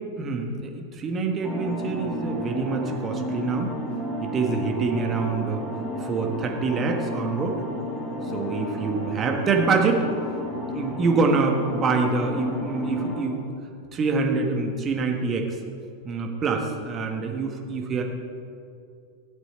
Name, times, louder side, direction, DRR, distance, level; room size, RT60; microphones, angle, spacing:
voice 1, 0.2-3.7 4.2-5.7 6.0-7.6 8.3-10.1 10.7-13.4 13.9-15.6 16.0-18.0, right 4 dB, 25° right, 2 dB, 1.5 m, -25 dB
sound 1, 1.4-13.2, equal, 15° left, 2.6 m, -32 dB
16.0 x 8.0 x 4.4 m, 2.4 s
figure-of-eight pair, 90°, 0 cm